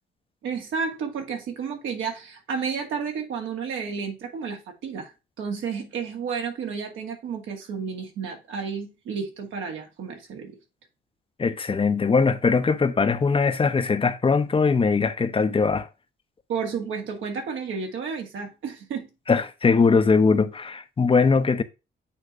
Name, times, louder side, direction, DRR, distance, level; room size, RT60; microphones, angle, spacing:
voice 1, 0.4-5.1 5.4-10.6 16.5-19.1, right 6 dB, 80° right, 2.2 m, -31 dB
voice 2, 11.4-15.9 19.3-21.6, left 4 dB, 25° left, 0.8 m, -21 dB
8.6 x 3.1 x 5.0 m
cardioid pair, 90°, 20 cm